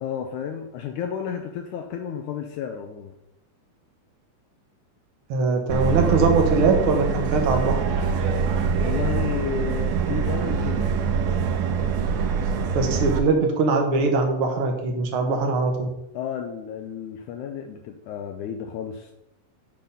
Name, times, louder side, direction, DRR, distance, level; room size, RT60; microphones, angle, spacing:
voice 1, 0.0-3.1 8.8-10.9 13.0-13.1 16.1-19.1, left 8 dB, 80° left, 4 dB, 2.0 m, -32 dB
voice 2, 5.3-7.8 12.7-15.9, right 3 dB, 55° right, 2 dB, 1.6 m, -21 dB
Subway metro underground, 5.7-13.2, right 6 dB, 85° right, 2.3 m, -24 dB
10.0 x 4.0 x 5.5 m, 0.87 s
omnidirectional pair, 3.7 m